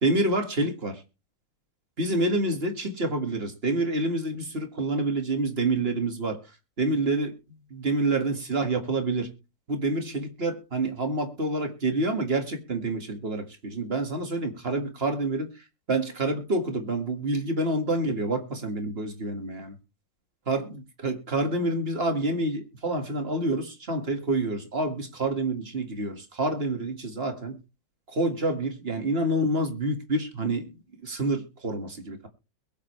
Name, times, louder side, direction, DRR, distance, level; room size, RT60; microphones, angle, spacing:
voice 1, 0.0-1.0 2.0-6.4 6.8-7.3 7.7-9.3 9.7-15.5 15.9-19.7 20.5-20.7 21.0-27.6 28.1-30.7 31.0-32.3, right 2 dB, 30° right, 2.0 m, -27 dB
22.0 x 7.4 x 3.3 m
omnidirectional pair, 2.1 m